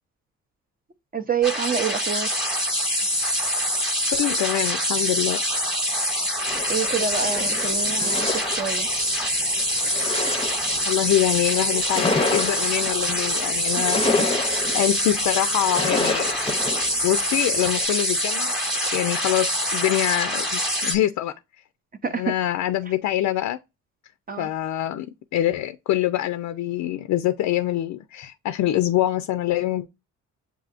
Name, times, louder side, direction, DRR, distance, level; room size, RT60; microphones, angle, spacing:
voice 1, 1.1-2.4 6.7-8.9 13.7-13.8 22.0-22.3 24.3-24.5, right 7 dB, 30° right, 0.6 m, -27 dB
sound 1, 1.4-21.0, equal, ahead, 1.1 m, -25 dB
voice 2, 4.1-5.4 10.9-14.0 14.7-16.3 17.0-18.6 18.9-21.3 22.1-23.6 24.4-25.1 25.3-29.9, left 13 dB, 75° left, 0.5 m, -24 dB
sound 2, 6.5-17.9, left 3 dB, 20° left, 0.6 m, -30 dB
7.5 x 2.7 x 2.5 m
cardioid pair, 90°, 30 cm